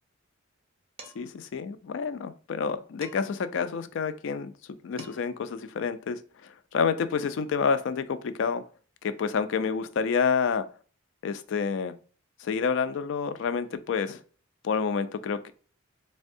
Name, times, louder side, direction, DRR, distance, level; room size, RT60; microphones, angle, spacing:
Dishes pots and pans, 1.0-1.4 3.0-3.5 4.6-4.7 5.0-5.4, right 3 dB, 30° right, 0.6 m, -48 dB
voice 1, 1.2-4.5 4.8-6.2 6.7-8.6 9.0-10.7 11.2-11.9 12.4-14.2 14.6-15.5, left 6 dB, 65° left, 0.3 m, -28 dB
3.4 x 2.2 x 2.5 m
head